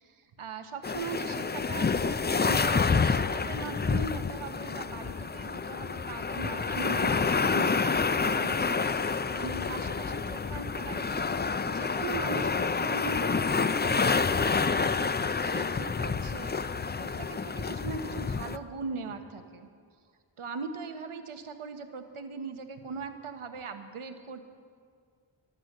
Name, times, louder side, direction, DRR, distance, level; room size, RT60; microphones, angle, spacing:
voice 1, 0.0-11.4 11.6-13.3 13.8-14.5 15.4-16.6 17.0-19.7 20.4-24.4, right 4 dB, 85° right, 7 dB, 1.1 m, -40 dB
sound 1, 0.8-18.6, left 5 dB, 25° left, 0.4 m, -28 dB
14.0 x 12.0 x 6.5 m, 2.1 s
wide cardioid pair, 60°, 49 cm